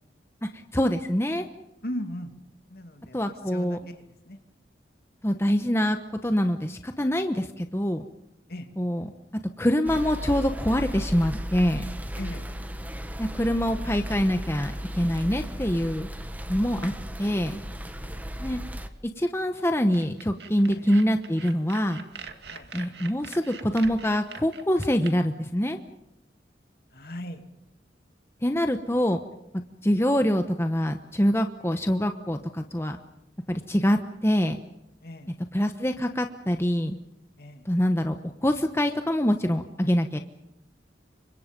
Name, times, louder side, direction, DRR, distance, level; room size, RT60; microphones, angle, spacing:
voice 1, 0.4-1.5 3.1-3.8 5.2-6.0 6.2-8.0 8.8-9.1 9.6-11.8 13.2-16.1 16.5-16.9 17.2-17.6 18.4-18.6 19.2-22.0 22.7-25.8 28.4-29.2 29.8-33.0 33.5-34.6 35.5-37.0 37.6-40.2, equal, 15° left, 6 dB, 1.1 m, -25 dB
voice 2, 1.8-2.4 2.7-4.4 8.5-8.7 12.2-12.4 17.4-18.3 20.6-20.9 22.5-22.7 26.9-27.4 35.0-35.3 37.4-37.6, left 1 dB, 55° left, 6 dB, 2.7 m, -39 dB
sound 1, 9.9-18.9, equal, 10° right, 1.4 m, -35 dB
sound 2, 19.9-25.1, right 5 dB, 65° right, 2.1 m, -43 dB
29.0 x 25.0 x 5.3 m, 0.85 s
head